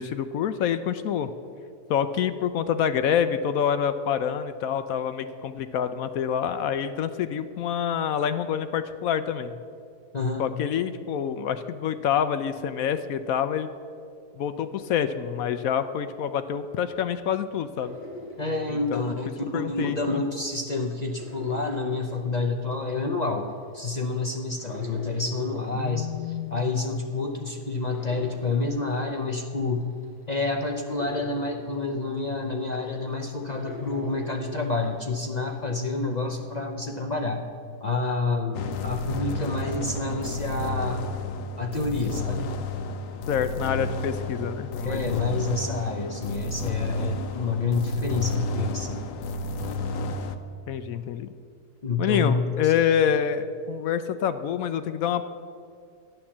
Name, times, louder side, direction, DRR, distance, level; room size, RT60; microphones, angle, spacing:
voice 1, 0.0-1.3 1.9-9.6 10.4-13.7 14.4-18.0 18.7-19.2 19.5-20.2 25.7-26.7 43.3-45.2 50.7-51.3 52.0-55.2, left 8 dB, 70° left, 11 dB, 0.9 m, -27 dB
voice 2, 10.1-10.5 18.4-23.5 23.7-29.9 30.3-37.5 37.8-41.0 41.6-42.5 44.8-49.0 51.8-52.7, left 3 dB, 40° left, 3 dB, 0.6 m, -28 dB
sound 1, 17.8-20.0 20.4-35.5 35.9-36.4, left 1 dB, 5° right, 2.4 m, -44 dB
sound 2, 38.5-50.4, left 2 dB, 90° left, 1.3 m, -31 dB
12.0 x 10.0 x 7.2 m, 2.3 s
omnidirectional pair, 1.7 m